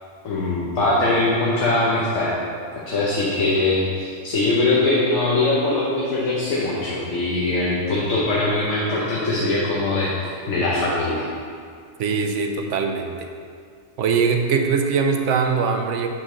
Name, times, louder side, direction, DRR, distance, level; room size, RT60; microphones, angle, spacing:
voice 1, 0.2-2.4 2.9-11.3, left 2 dB, 80° left, -5 dB, 1.3 m, -21 dB
voice 2, 12.0-13.3 14.0-16.1, right 5 dB, 80° right, 5 dB, 1.0 m, -22 dB
7.7 x 5.1 x 3.8 m, 2.2 s
omnidirectional pair, 1.3 m